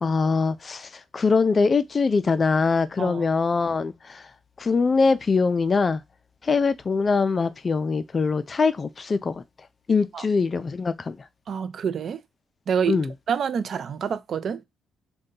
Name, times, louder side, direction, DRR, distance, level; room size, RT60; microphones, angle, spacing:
voice 1, 0.0-4.2 4.6-6.0 6.4-9.4 9.9-11.2 12.9-13.1, left 4 dB, 35° left, 0.3 m, -23 dB
voice 2, 11.5-12.2 12.7-13.0 13.3-14.6, right 7 dB, 55° right, 0.4 m, -27 dB
2.7 x 2.2 x 3.7 m
cardioid pair, 90°, 0 cm